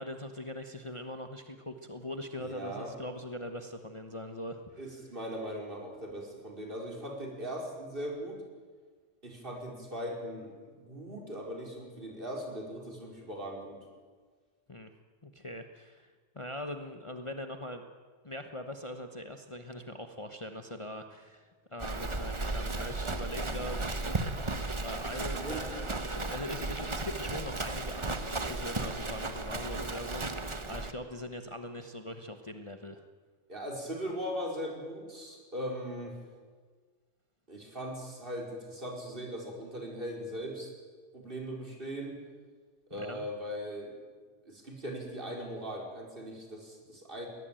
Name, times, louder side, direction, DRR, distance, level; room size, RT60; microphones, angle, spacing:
voice 1, 0.0-4.9 14.7-14.9 15.2-17.8 18.2-24.0 24.8-33.0 42.9-43.2, left 1 dB, 25° left, 6 dB, 1.2 m, -41 dB
voice 2, 2.4-2.9 4.8-8.4 9.2-13.9 25.3-25.6 33.5-36.2 37.5-40.7 41.1-42.2 42.9-43.9 44.4-47.3, equal, 45° right, 0 dB, 5.1 m, -39 dB
Livestock farm animals working animals, 21.8-30.9, right 2 dB, 25° right, 1.2 m, -35 dB
22.0 x 18.5 x 9.0 m, 1.5 s
omnidirectional pair, 1.3 m